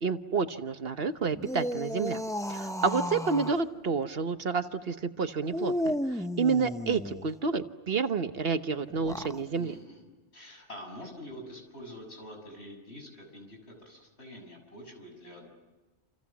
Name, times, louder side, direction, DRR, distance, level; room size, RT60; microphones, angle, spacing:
voice 1, 0.0-2.2 2.5-9.7, right 5 dB, 60° right, 9 dB, 1.2 m, -29 dB
sound 1, 1.3-3.6 5.5-7.3 8.9-9.4, equal, 5° left, 0.7 m, -33 dB
voice 2, 9.5-10.0 10.3-15.5, equal, 65° left, 2 dB, 7.3 m, -46 dB
29.0 x 28.5 x 7.3 m, 1.2 s
omnidirectional pair, 1.2 m